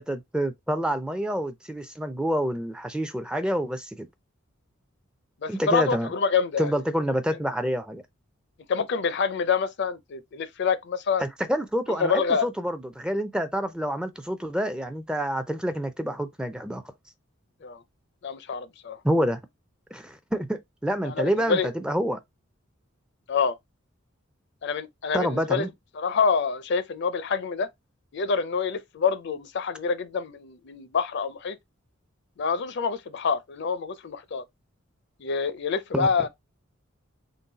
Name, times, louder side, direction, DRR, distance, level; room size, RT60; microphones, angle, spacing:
voice 1, 0.0-4.1 5.5-6.1 6.6-8.0 11.2-16.8 19.0-19.4 19.9-22.2 25.1-25.7 35.9-36.3, equal, 5° right, 0.3 m, -28 dB
voice 2, 5.4-6.7 8.7-11.2 12.0-12.5 17.6-17.8 18.2-19.0 21.0-21.7 23.3-23.5 24.6-25.7 26.0-27.7 28.1-31.6 32.4-34.4 35.2-36.3, left 5 dB, 60° left, 0.5 m, -26 dB
3.9 x 2.2 x 3.8 m
head